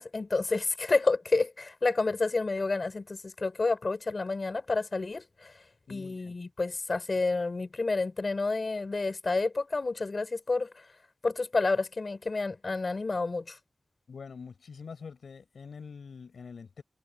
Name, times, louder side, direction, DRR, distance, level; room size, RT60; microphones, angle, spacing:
voice 1, 0.0-5.2 5.9-10.7 11.2-13.6, left 3 dB, 45° left, 3.9 m, -29 dB
voice 2, 5.9-6.3 14.1-16.8, left 5 dB, 85° left, 5.7 m, -45 dB
wide cardioid pair, 85°, 0 cm